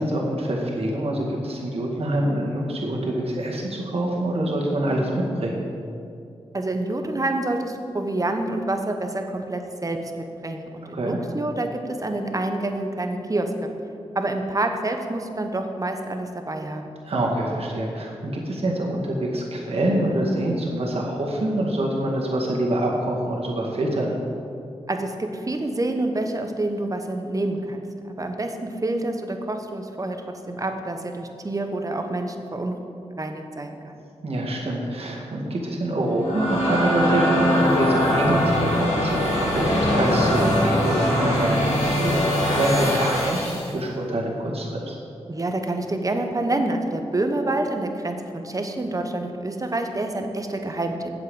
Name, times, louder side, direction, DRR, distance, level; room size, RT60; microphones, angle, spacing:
voice 1, 0.0-5.6 10.8-11.2 17.1-24.2 34.2-45.0, right 1 dB, 60° right, -3 dB, 2.1 m, -25 dB
voice 2, 6.5-13.7 14.1-16.9 24.9-30.2 30.5-32.8 33.1-34.0 45.3-51.1, right 2 dB, 30° right, 5 dB, 1.1 m, -27 dB
sound 1, 36.0-43.7, equal, 90° left, 2.8 m, -22 dB
8.2 x 7.5 x 8.2 m, 2.5 s
cardioid pair, 65°, 11 cm